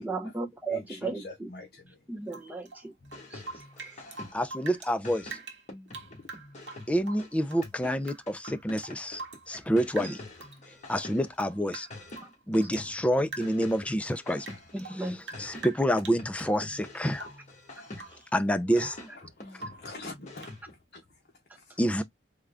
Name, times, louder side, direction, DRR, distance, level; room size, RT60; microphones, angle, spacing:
voice 1, 0.0-1.5 2.1-2.9 3.3-3.4 10.0-10.1 14.7-15.2 18.1-18.2, right 3 dB, 10° right, 0.7 m, -35 dB
voice 2, 0.7-1.8 19.4-21.2 21.5-21.8, left 2 dB, 60° left, 0.8 m, -45 dB
Rain / Drip, 2.3-4.9 5.2-7.7 8.0-9.7 10.0-10.6 10.9-12.9 13.3-13.7 14.1-16.6 17.1-17.5 17.9-18.3 18.5-19.1 19.6-19.9 20.4-20.6, right 3 dB, 85° right, 0.9 m, -45 dB
sound 1, 3.0-4.6 5.0-11.5 11.9-14.9 15.3-18.3 18.8-20.8, left 2 dB, 40° left, 1.3 m, -46 dB
voice 3, 4.3-5.4 6.9-9.2 9.5-10.2 10.9-11.9 12.5-14.5 15.0-17.3 18.3-19.0 21.8-22.0, equal, 5° left, 0.3 m, -28 dB
3.7 x 2.2 x 3.3 m
head